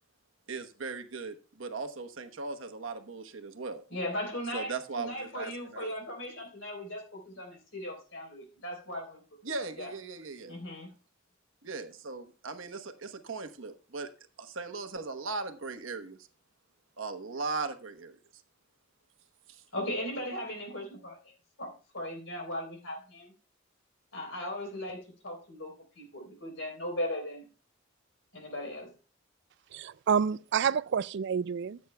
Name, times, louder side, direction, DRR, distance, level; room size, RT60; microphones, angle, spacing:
voice 1, 0.5-3.8 4.5-5.9 9.4-10.6 11.6-14.1 14.4-16.2 17.0-18.2 19.5-19.6, right 4 dB, 80° right, 1.1 m, -38 dB
voice 2, 3.9-9.2 9.8-9.9 10.5-10.9 19.7-21.2 21.6-23.3 24.1-27.5 28.3-28.9, left 1 dB, 70° left, 3.7 m, -38 dB
voice 3, 29.7-31.8, right 7 dB, 60° right, 0.3 m, -28 dB
15.5 x 8.3 x 2.3 m
head